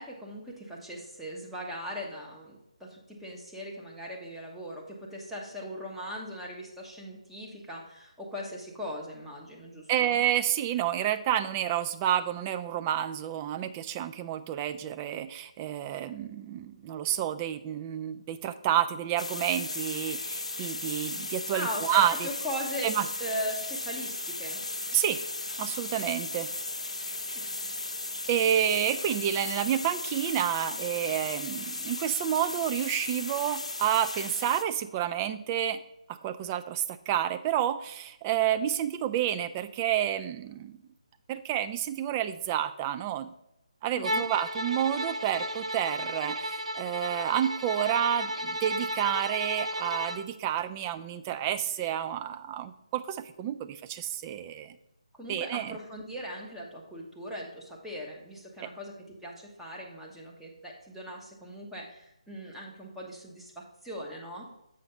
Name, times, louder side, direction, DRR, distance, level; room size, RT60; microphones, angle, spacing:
voice 1, 0.0-10.2 21.5-24.6 43.9-44.3 55.1-64.5, equal, ahead, -4 dB, 1.0 m, -39 dB
voice 2, 9.9-22.3 22.8-23.0 24.9-25.2 25.6-26.5 28.3-35.8 36.2-40.8 41.3-43.3 43.8-54.8 55.3-55.8 58.6-58.7, right 10 dB, 20° right, 10 dB, 0.3 m, -29 dB
sound 1, 19.2-34.6, left 2 dB, 70° left, 0.8 m, -36 dB
Bowed string instrument, 44.0-50.3, right 1 dB, 80° right, 0.7 m, -33 dB
7.8 x 5.0 x 4.2 m, 0.84 s
figure-of-eight pair, 150°, 4 cm